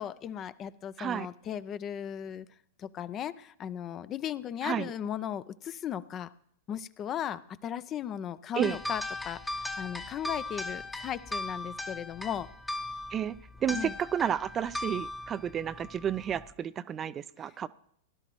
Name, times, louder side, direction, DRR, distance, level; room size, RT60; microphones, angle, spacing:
voice 1, 0.0-2.5 2.8-6.3 6.7-12.5 13.7-13.9, left 9 dB, 30° left, 17 dB, 0.5 m, -37 dB
sound 1, 8.6-16.5, left 2 dB, 5° left, 0.8 m, -38 dB
voice 2, 13.6-17.7, right 9 dB, 25° right, 16 dB, 0.4 m, -31 dB
17.5 x 11.5 x 3.1 m, 0.66 s
hypercardioid pair, 100°, 0 cm